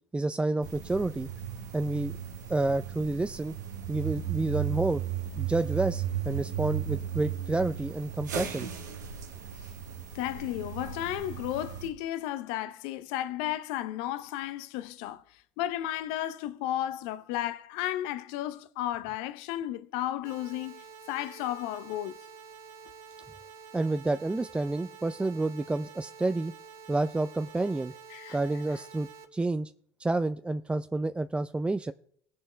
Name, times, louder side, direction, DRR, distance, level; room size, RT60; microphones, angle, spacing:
voice 1, 0.1-1.3 1.7-2.2 2.5-3.6 3.9-5.0 5.4-8.7 23.7-26.5 26.9-27.9 28.3-29.7 30.0-31.9, right 2 dB, 10° right, 0.4 m, -29 dB
sound 1, 0.6-11.9, right 10 dB, 85° right, 1.4 m, -36 dB
voice 2, 10.1-15.2 15.6-22.2 28.1-28.4, left 13 dB, 65° left, 0.7 m, -33 dB
sound 2, 20.2-29.2, right 6 dB, 60° right, 1.6 m, -49 dB
19.5 x 6.7 x 3.3 m
hypercardioid pair, 70°, 9 cm